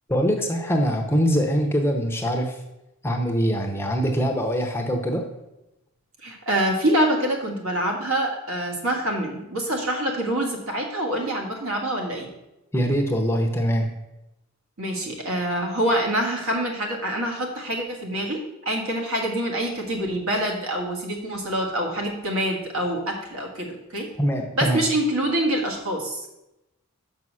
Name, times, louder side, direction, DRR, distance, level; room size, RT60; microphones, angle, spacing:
voice 1, 0.1-2.6 3.0-5.2 12.7-13.9 24.2-24.8, equal, 10° left, 2 dB, 0.8 m, -23 dB
voice 2, 6.2-12.3 14.8-24.1 24.6-26.3, right 1 dB, 65° right, 1 dB, 1.8 m, -26 dB
6.7 x 5.5 x 6.2 m, 0.91 s
head